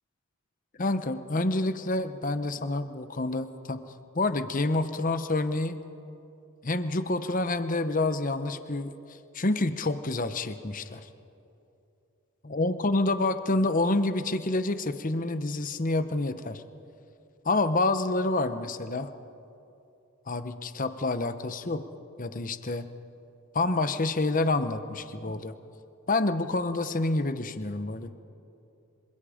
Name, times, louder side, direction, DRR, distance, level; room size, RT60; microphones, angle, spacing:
voice 1, 0.8-3.8 4.1-5.8 6.6-8.9 9.3-11.1 12.4-16.6 17.4-19.1 20.3-21.8 22.2-22.8 23.5-25.5 26.1-28.2, left 2 dB, 35° left, 10 dB, 0.9 m, -28 dB
26.5 x 25.5 x 5.0 m, 2.8 s
head